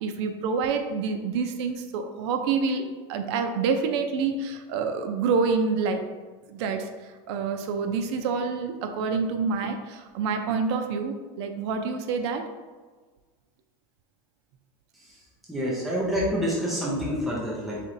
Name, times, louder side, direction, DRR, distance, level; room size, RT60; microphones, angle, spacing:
voice 1, 0.0-6.1 6.5-6.9 7.3-12.5, right 5 dB, 85° right, 6 dB, 0.4 m, -27 dB
voice 2, 15.5-17.8, equal, ahead, -7 dB, 0.5 m, -27 dB
4.2 x 3.0 x 2.6 m, 1.4 s
cardioid pair, 170°, 14 cm